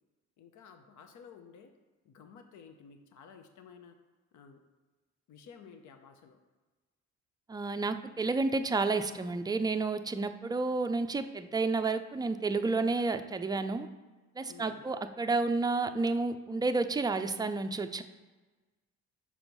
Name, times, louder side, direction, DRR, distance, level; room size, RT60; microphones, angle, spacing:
voice 1, 0.4-1.7 2.0-4.0 4.3-4.6 5.3-6.4 14.4-14.8, left 6 dB, 75° left, 7 dB, 0.8 m, -53 dB
voice 2, 7.5-13.9 14.4-18.0, right 3 dB, 15° right, 8 dB, 0.4 m, -30 dB
6.2 x 4.4 x 5.3 m, 1.3 s
cardioid pair, 90°, 30 cm